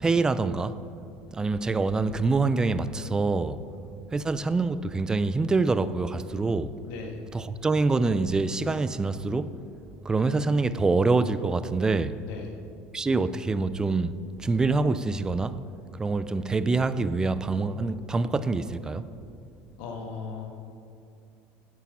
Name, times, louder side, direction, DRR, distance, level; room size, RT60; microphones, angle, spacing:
voice 1, 0.0-0.8 1.3-3.6 4.1-6.7 7.3-9.6 10.0-12.2 12.9-14.1 14.4-15.6 16.0-19.1, right 3 dB, 15° right, 0.3 m, -25 dB
voice 2, 6.9-7.2 12.2-12.5 19.8-20.5, left 5 dB, 80° left, 1.7 m, -37 dB
10.5 x 8.6 x 5.5 m
cardioid pair, 150°, 5 cm